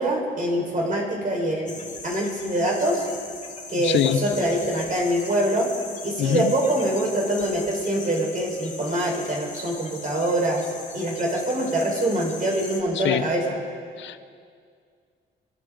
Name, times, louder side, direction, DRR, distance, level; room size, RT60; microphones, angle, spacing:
voice 1, 0.0-3.1 3.7-5.7 6.0-10.6 10.9-13.6, right 1 dB, 45° right, -1 dB, 4.9 m, -24 dB
sound 1, 1.7-12.8, left 4 dB, 35° left, 3.0 m, -39 dB
voice 2, 3.8-4.2 6.2-6.5 12.9-13.3 14.0-14.2, left 10 dB, 70° left, 13 dB, 0.8 m, -24 dB
27.0 x 11.0 x 3.9 m, 2.2 s
cardioid pair, 90°, 20 cm